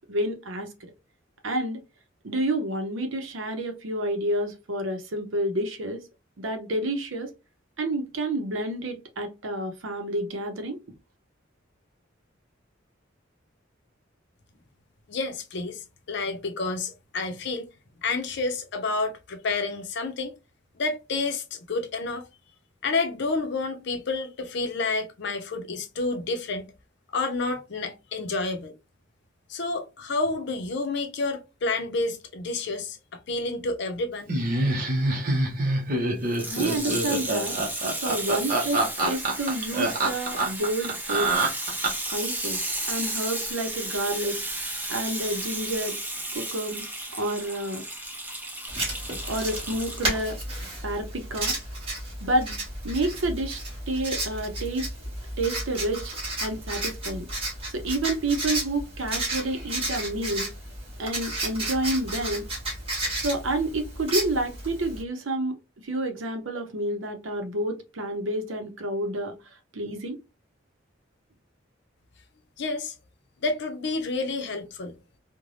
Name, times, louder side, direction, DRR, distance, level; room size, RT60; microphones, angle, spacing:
voice 1, 0.1-0.7 1.4-1.8 2.2-6.0 6.4-7.3 7.8-10.8 36.4-37.6 38.0-41.4 42.1-42.6 42.9-44.4 44.9-46.0 46.3-46.8 47.2-47.8 49.3-50.4 50.8-51.6 52.2-52.6 52.8-53.6 53.9-54.9 55.4-56.1 56.4-57.3 57.7-60.5 61.0-62.4 63.2-65.6 65.8-69.3 69.7-70.2, right 1 dB, 80° right, 0.7 m, -29 dB
voice 2, 15.1-17.7 18.0-20.3 20.8-22.3 22.8-26.7 27.1-28.7 29.5-34.3 72.6-72.9 73.4-75.0, left 3 dB, 60° left, 0.6 m, -29 dB
Laughter, 34.3-42.2, right 2 dB, 45° right, 0.7 m, -25 dB
Water tap faucet / Sink (filling or washing), 36.2-50.2 50.9-51.0, right 1 dB, 10° right, 0.6 m, -33 dB
Writing, 48.7-65.0, right 1 dB, 30° right, 1.3 m, -33 dB
3.2 x 2.1 x 2.5 m
head